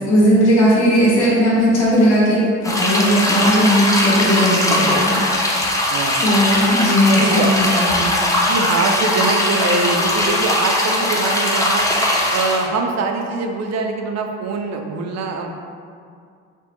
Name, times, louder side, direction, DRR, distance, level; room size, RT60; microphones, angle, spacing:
voice 1, 0.0-5.6 6.2-8.3, equal, 85° left, -8 dB, 1.4 m, -17 dB
sound 1, 2.6-12.7, left 1 dB, 10° left, 0.5 m, -19 dB
voice 2, 4.7-5.0 5.9-6.3 7.1-7.6 8.4-11.9 12.3-15.5, right 3 dB, 60° right, 3 dB, 0.5 m, -23 dB
4.3 x 2.1 x 2.9 m, 2.3 s
cardioid pair, 90°, 30 cm